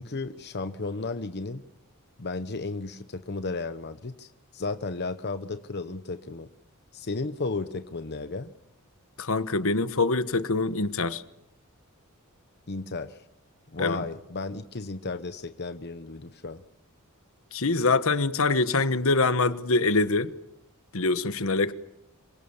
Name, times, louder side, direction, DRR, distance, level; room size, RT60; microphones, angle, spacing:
voice 1, 0.0-1.6 2.2-6.5 6.9-8.5 12.7-13.2 13.7-16.6, left 3 dB, 50° left, 1.0 m, -34 dB
voice 2, 9.2-11.2 13.8-14.0 17.5-20.3 20.9-21.7, left 3 dB, 65° left, 1.3 m, -24 dB
26.5 x 24.0 x 7.2 m
head